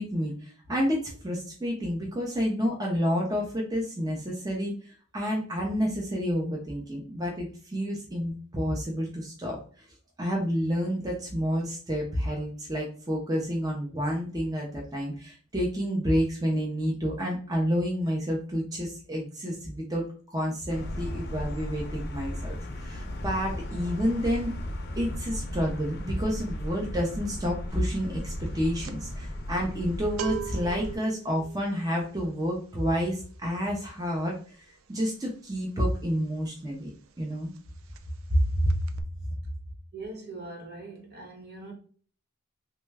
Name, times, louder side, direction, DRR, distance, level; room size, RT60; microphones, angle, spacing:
voice 1, 0.0-9.6 10.2-20.0 20.3-24.5 25.0-36.9 37.2-37.5 38.3-38.7, equal, 20° right, 0.6 m, -29 dB
sound 1, 20.7-31.0, left 1 dB, 55° left, 0.6 m, -36 dB
sound 2, 27.7-28.0 28.2-36.8 37.1-37.3 37.5-38.4 38.7-39.0, right 9 dB, 80° right, 0.4 m, -41 dB
voice 2, 39.9-41.7, right 2 dB, 55° right, 1.1 m, -41 dB
3.1 x 2.2 x 3.3 m
head